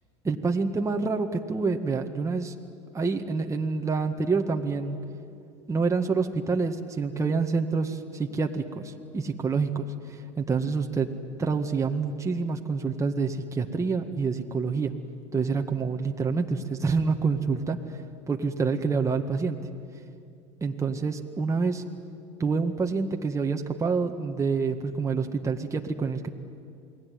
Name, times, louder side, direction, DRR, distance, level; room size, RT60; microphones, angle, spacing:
voice 1, 0.2-2.6 2.9-5.0 5.7-11.1 11.4-14.9 15.3-17.8 18.3-19.6 20.6-21.8 22.4-26.3, right 4 dB, 20° right, 3 dB, 1.8 m, -27 dB
28.0 x 20.0 x 9.5 m, 2.4 s
hypercardioid pair, 80°, 16 cm